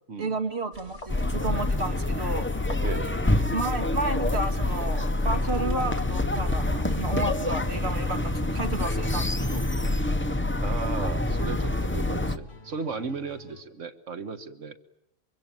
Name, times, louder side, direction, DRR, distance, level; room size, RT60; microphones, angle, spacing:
voice 1, 0.2-2.5 3.5-9.7, right 2 dB, 60° right, 6 dB, 2.2 m, -32 dB
sound 1, 0.7-10.5, left 1 dB, 30° left, 6.9 m, -48 dB
sound 2, 1.1-12.4, left 2 dB, 10° left, 0.9 m, -26 dB
sound 3, 2.3-13.6, left 3 dB, 45° left, 5.5 m, -48 dB
voice 2, 2.8-3.2 7.4-7.5 10.6-14.8, right 5 dB, 85° right, 9 dB, 1.7 m, -35 dB
24.5 x 24.5 x 8.9 m, 0.73 s
omnidirectional pair, 1.3 m